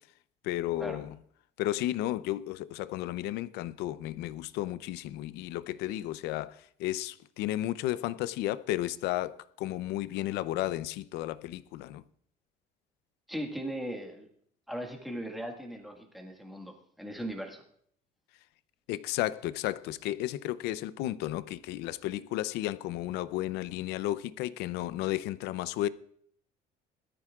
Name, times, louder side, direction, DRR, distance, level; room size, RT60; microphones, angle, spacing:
voice 1, 0.4-1.1 1.6-12.0 18.9-25.9, left 14 dB, 70° left, 0.6 m, -33 dB
voice 2, 13.3-14.3 14.7-17.6, equal, ahead, 1.7 m, -38 dB
21.0 x 13.5 x 2.4 m
cardioid pair, 165°, 18 cm